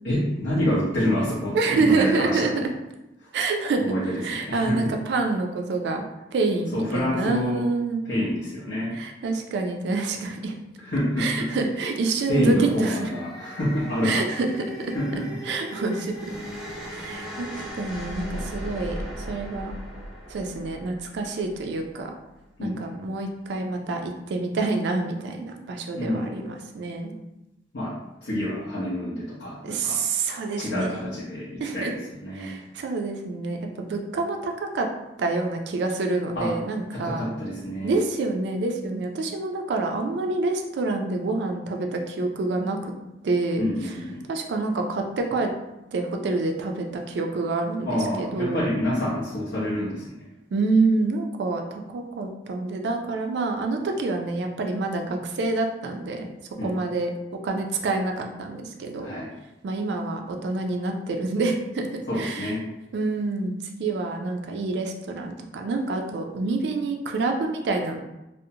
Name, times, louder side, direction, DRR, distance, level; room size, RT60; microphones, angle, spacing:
voice 1, 0.0-2.7 3.2-3.3 3.8-4.9 6.7-7.6 8.0-9.0 10.8-11.5 12.3-14.2 14.9-15.2 15.5-15.6 22.6-22.8 26.0-26.3 27.7-27.9 28.2-30.0 30.6-31.9 32.2-32.5 36.4-36.5 36.9-38.0 43.6-44.2 47.8-50.0 56.6-56.7 59.0-59.3 62.1-62.7, left 1 dB, 65° left, -9 dB, 0.6 m, -27 dB
voice 2, 1.5-2.5 3.3-3.9 4.2-6.0 6.3-8.1 8.9-10.5 11.2-13.1 14.0-14.9 15.4-16.1 16.9-19.7 20.3-22.1 22.6-27.1 29.6-30.9 31.6-31.9 32.3-34.9 35.2-37.3 37.8-42.9 43.2-43.9 44.3-45.5 45.9-48.7 50.5-56.3 56.6-57.1 57.4-59.1 59.6-62.5 62.9-68.0, right 3 dB, 65° right, 3 dB, 0.3 m, -27 dB
sound 1, 12.7-21.9, equal, 5° right, 0.5 m, -38 dB
2.5 x 2.0 x 2.7 m, 0.94 s
head